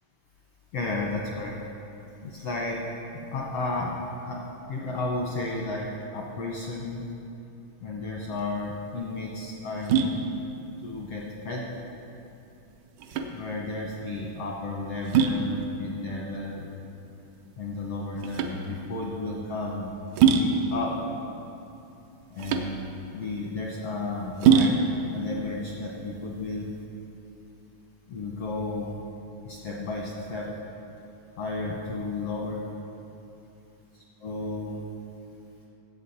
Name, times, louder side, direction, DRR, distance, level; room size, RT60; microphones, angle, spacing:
voice 1, 0.7-1.5 2.2-2.8 3.1-4.0 4.2-4.4 4.7-7.0 7.8-10.1 10.8-11.7 13.3-16.6 17.6-19.9 20.3-20.9 22.3-24.7 25.1-26.7 28.1-29.0 29.4-30.5 31.4-32.6 34.2-34.8, left 2 dB, 75° left, -2 dB, 1.4 m, -33 dB
sound 1, 8.3-26.9, right 6 dB, 80° right, 1.8 m, -27 dB
15.5 x 8.0 x 4.2 m, 2.8 s
omnidirectional pair, 4.3 m